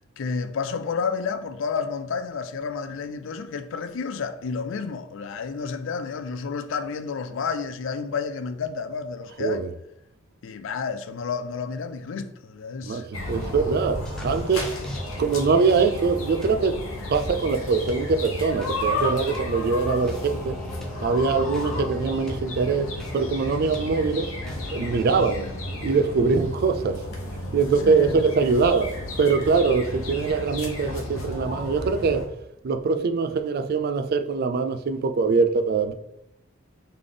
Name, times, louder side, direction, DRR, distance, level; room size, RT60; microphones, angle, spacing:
voice 1, 0.2-9.6 10.4-13.1 25.1-25.3 27.8-28.2, left 5 dB, 65° left, 0.4 m, -30 dB
voice 2, 12.8-14.7 15.2-16.8 17.1-20.6 21.0-24.3 24.7-25.5 25.8-27.1 27.5-32.3 32.6-35.9, right 4 dB, 50° right, 0.3 m, -23 dB
sound 1, 13.1-32.3, left 1 dB, 85° left, 1.0 m, -33 dB
sound 2, 13.3-25.2, equal, 5° left, 0.6 m, -41 dB
3.4 x 3.3 x 3.8 m
head